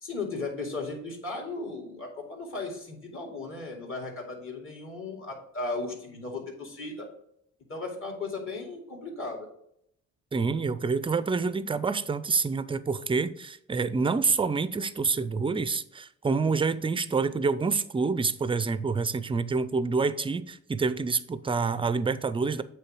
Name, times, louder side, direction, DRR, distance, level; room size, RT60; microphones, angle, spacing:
voice 1, 0.0-7.1 7.7-9.5, left 3 dB, 45° left, 2.4 m, -36 dB
voice 2, 10.3-22.6, right 4 dB, 20° right, 0.4 m, -27 dB
8.1 x 3.3 x 6.2 m
cardioid pair, 90°, 30 cm